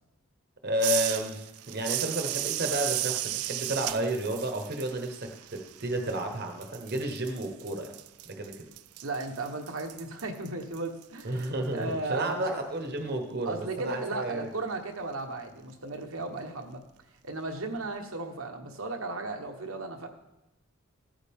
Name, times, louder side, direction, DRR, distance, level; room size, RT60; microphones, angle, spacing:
voice 1, 0.6-7.9 8.3-8.6 11.2-14.5, right 1 dB, 45° right, 4 dB, 1.1 m, -32 dB
sound 1, 0.8-6.3 6.6-11.5, right 15 dB, 85° right, 0.4 m, -35 dB
voice 2, 9.0-12.6 13.4-16.8 17.2-20.1, right 2 dB, 70° right, 3 dB, 1.2 m, -35 dB
15.0 x 9.0 x 3.6 m, 0.99 s
head